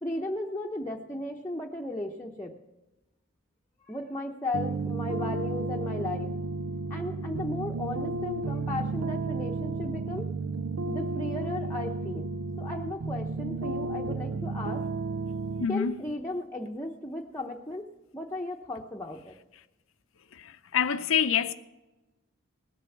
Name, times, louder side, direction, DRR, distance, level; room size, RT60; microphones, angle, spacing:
voice 1, 0.0-2.5 3.9-6.3 6.9-10.3 10.9-12.3 12.6-14.8 15.7-17.8 18.1-19.3, left 2 dB, 10° left, 0.8 m, -35 dB
sound 1, 4.5-15.7, right 3 dB, 80° right, 0.5 m, -32 dB
voice 2, 15.6-15.9 20.3-21.5, left 7 dB, 70° left, 0.6 m, -26 dB
19.5 x 6.9 x 7.0 m
head